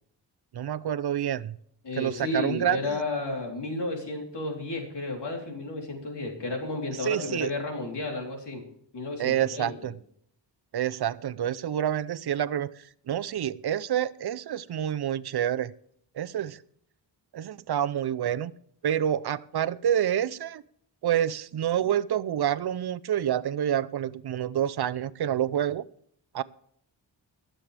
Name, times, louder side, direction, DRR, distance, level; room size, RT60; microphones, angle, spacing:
voice 1, 0.5-1.6 2.0-3.0 7.0-7.5 9.2-9.9 10.7-12.7 13.1-15.7 16.1-16.6 17.3-18.5 18.8-20.6 21.0-25.8 26.3-26.4, right 10 dB, 60° right, 0.6 m, -28 dB
voice 2, 1.8-8.6 8.9-9.9, left 2 dB, 65° left, 3.6 m, -32 dB
23.0 x 7.7 x 3.4 m
wide cardioid pair, 120°, 44 cm